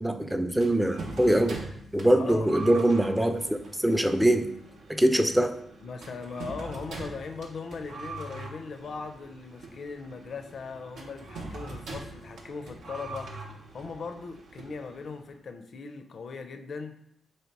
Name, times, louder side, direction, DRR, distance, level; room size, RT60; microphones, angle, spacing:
voice 1, 0.0-1.6 1.9-4.5 4.9-5.6, right 1 dB, 5° right, 7 dB, 0.4 m, -23 dB
sound 1, 0.6-15.3, right 2 dB, 80° right, 0.7 m, -43 dB
voice 2, 2.1-2.5 5.8-13.3 13.7-17.0, left 4 dB, 60° left, 8 dB, 0.4 m, -39 dB
3.2 x 2.8 x 4.5 m, 0.74 s
cardioid pair, 75°, 0 cm